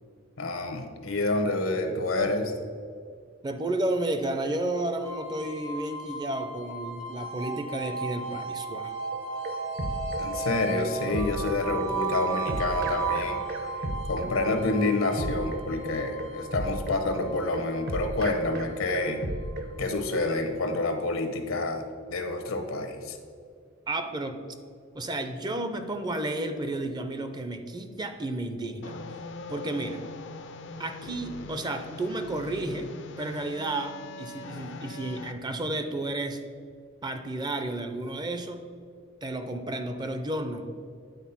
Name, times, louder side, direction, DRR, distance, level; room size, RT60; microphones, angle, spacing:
voice 1, 0.4-2.5 10.2-13.4 14.1-19.2 19.8-23.2, left 2 dB, 80° left, 6 dB, 0.9 m, -28 dB
voice 2, 3.4-8.9 23.9-24.4 24.9-28.9 29.5-30.0 30.8-32.9 33.2-36.4 37.0-38.6 39.2-40.9, right 2 dB, 20° right, 8 dB, 0.5 m, -32 dB
sound 1, 5.0-20.0, right 4 dB, 80° right, 1.2 m, -35 dB
sound 2, 9.1-19.7, right 1 dB, 50° right, 0.9 m, -35 dB
sound 3, 28.8-35.3, left 3 dB, 60° left, 0.5 m, -41 dB
9.3 x 4.1 x 5.7 m, 2.2 s
head